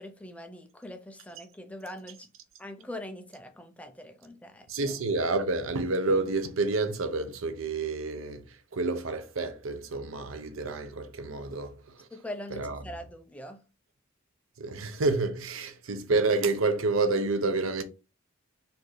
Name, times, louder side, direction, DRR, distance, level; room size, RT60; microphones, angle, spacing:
voice 1, 0.0-2.3 2.6-4.7 12.1-13.6, left 1 dB, 5° left, 0.4 m, -42 dB
voice 2, 4.7-12.1 12.5-12.8 14.6-17.8, right 3 dB, 85° right, 0.6 m, -29 dB
4.2 x 2.7 x 3.1 m
head